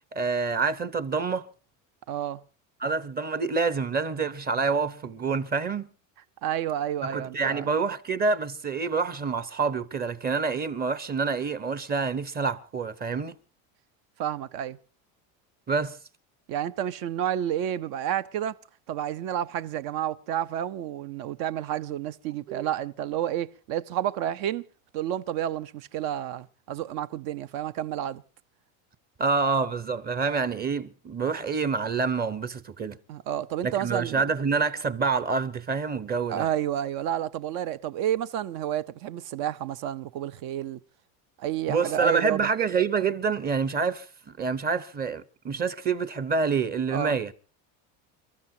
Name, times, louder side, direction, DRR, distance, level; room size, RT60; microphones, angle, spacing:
voice 1, 0.1-1.5 2.8-5.9 7.0-13.3 15.7-16.0 22.5-22.7 29.2-33.0 33.6-36.5 41.7-44.1 44.4-47.3, right 5 dB, 25° right, 0.8 m, -27 dB
voice 2, 2.1-2.4 6.4-7.7 14.2-14.8 16.5-18.6 18.9-24.6 24.9-28.2 33.1-34.2 36.3-40.8 41.4-42.5 46.9-47.1, right 11 dB, 60° right, 0.8 m, -30 dB
29.5 x 13.5 x 2.8 m
cardioid pair, 140°, 40 cm